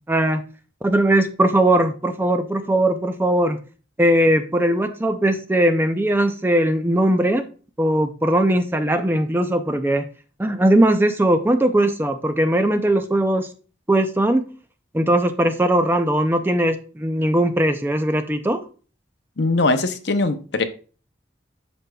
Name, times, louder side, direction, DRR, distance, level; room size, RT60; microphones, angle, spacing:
voice 1, 0.1-0.4 0.8-3.6 4.0-7.5 7.8-10.0 10.4-13.5 13.9-14.4 14.9-18.6, right 1 dB, 10° right, 8 dB, 0.4 m, -19 dB
voice 2, 19.4-20.6, left 2 dB, 60° left, 9 dB, 0.7 m, -21 dB
7.6 x 6.2 x 2.3 m, 0.38 s
head